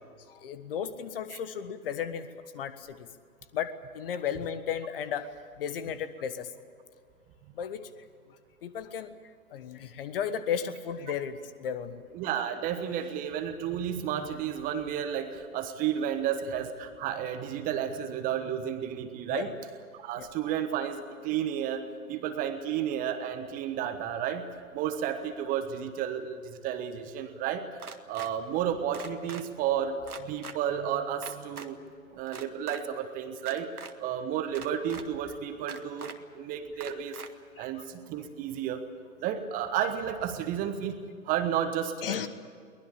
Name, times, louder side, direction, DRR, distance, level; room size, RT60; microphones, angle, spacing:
voice 1, 0.3-2.3 2.5-3.1 3.5-5.3 5.6-6.5 7.5-7.9 8.6-9.1 9.5-12.0 19.3-19.5 20.2-20.3 37.6-37.8 42.0-42.3, left 8 dB, 40° left, 12 dB, 1.4 m, -34 dB
voice 2, 12.1-19.5 19.9-31.8 32.1-37.2 37.6-38.8 39.2-42.3, right 9 dB, 20° right, 9 dB, 1.2 m, -32 dB
sound 1, 27.8-28.3 28.9-29.4 30.1-30.5 31.2-31.7 32.3-32.8 33.4-33.9 34.5-35.0 35.7-36.1 36.8-37.3, right 5 dB, 75° right, 1.9 m, -42 dB
23.0 x 20.0 x 8.4 m, 2.1 s
figure-of-eight pair, 120°, 44 cm